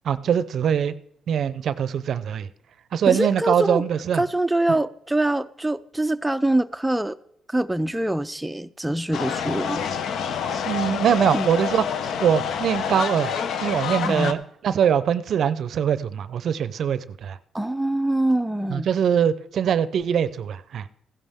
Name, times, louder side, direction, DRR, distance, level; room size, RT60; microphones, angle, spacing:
voice 1, 0.0-0.9 1.3-2.5 2.9-4.2 10.6-11.8 12.2-13.3 13.6-17.4 18.7-20.8, right 8 dB, 65° right, 0.5 m, -22 dB
voice 2, 3.1-3.8 4.1-7.2 7.5-9.9 11.3-11.5 14.0-14.4 17.5-18.9, right 1 dB, 5° right, 0.4 m, -24 dB
sound 1, 9.1-14.3, left 7 dB, 70° left, 0.7 m, -27 dB
15.0 x 11.0 x 3.5 m
cardioid pair, 90°, 0 cm